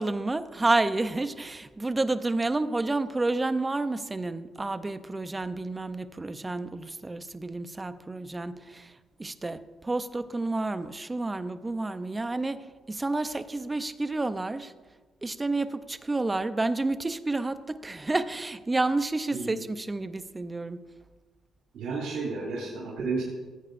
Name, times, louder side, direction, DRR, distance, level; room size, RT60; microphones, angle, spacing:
voice 1, 0.0-14.7 15.2-20.8, right 2 dB, 20° right, 11 dB, 0.6 m, -30 dB
voice 2, 21.7-23.2, right 4 dB, 80° right, -5 dB, 2.5 m, -32 dB
16.5 x 8.9 x 2.5 m, 1.3 s
cardioid pair, 90°, 0 cm